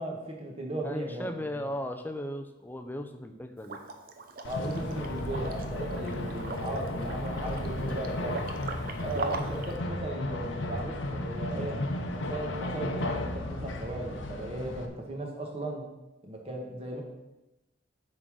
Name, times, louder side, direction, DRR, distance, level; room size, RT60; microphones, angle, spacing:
voice 1, 0.0-1.7 4.5-8.6 9.0-11.8 12.1-15.8 16.2-17.0, right 1 dB, 30° right, 0 dB, 1.5 m, -36 dB
voice 2, 0.8-3.8, left 1 dB, 10° left, 7 dB, 0.5 m, -37 dB
Liquid, 3.6-9.7, right 3 dB, 50° right, 0.6 m, -40 dB
sound 1, 4.4-14.9, left 1 dB, 85° left, 0.9 m, -34 dB
8.0 x 3.9 x 6.3 m, 0.98 s
head